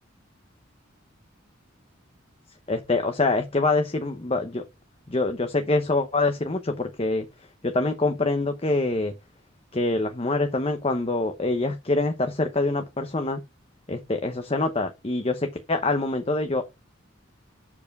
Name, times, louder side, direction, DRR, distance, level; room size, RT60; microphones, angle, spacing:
voice 1, 2.7-4.6 5.1-7.3 7.6-9.1 9.7-13.4 13.9-16.6, left 2 dB, 30° left, 0.8 m, -25 dB
7.3 x 4.8 x 5.3 m
head